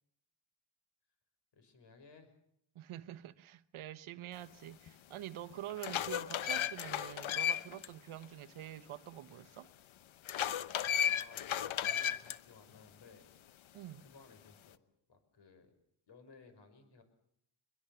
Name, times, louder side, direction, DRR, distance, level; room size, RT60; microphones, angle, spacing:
voice 1, 1.5-2.3 10.9-13.3 14.0-14.8 15.1-15.7 16.1-17.0, left 4 dB, 55° left, 6.1 m, -59 dB
voice 2, 2.7-9.7 13.7-14.0, right 12 dB, 80° right, 1.1 m, -46 dB
sound 1, 4.9-5.0 5.5-7.9 8.2-8.3 10.3-12.4, left 10 dB, 70° left, 1.1 m, -34 dB
23.5 x 22.0 x 6.9 m
cardioid pair, 120°, 49 cm